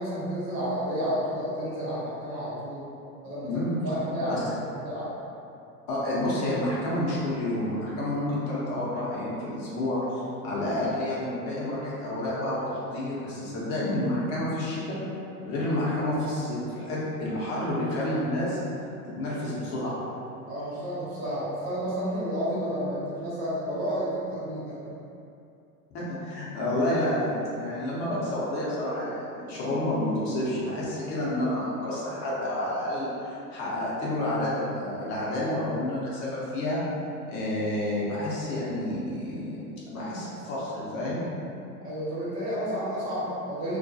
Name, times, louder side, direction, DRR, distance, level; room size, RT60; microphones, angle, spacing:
voice 1, 0.0-2.8 3.2-4.5 4.8-5.1 20.5-24.9 41.8-43.8, equal, 35° right, -8 dB, 1.0 m, -31 dB
voice 2, 3.4-3.7 4.3-4.4 5.9-15.0 15.4-18.6 19.1-20.0 25.9-36.8 37.3-41.3, left 1 dB, 40° left, -7 dB, 0.7 m, -29 dB
2.3 x 2.2 x 2.6 m, 2.7 s
hypercardioid pair, 90°, 45 cm